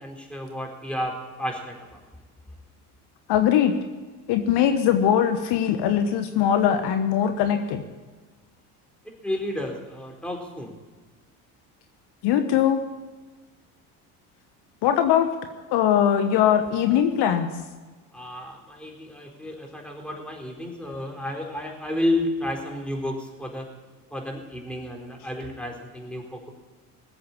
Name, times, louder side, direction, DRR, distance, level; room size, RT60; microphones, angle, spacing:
voice 1, 0.0-2.0 9.2-10.7 18.1-23.7 24.1-26.5, left 1 dB, ahead, 1 dB, 4.2 m, -31 dB
voice 2, 3.3-3.7 4.3-7.8 12.2-12.8 14.8-15.3 15.7-17.5, left 9 dB, 65° left, 8 dB, 1.3 m, -21 dB
19.5 x 7.8 x 8.6 m, 1.3 s
supercardioid pair, 75°, 43 cm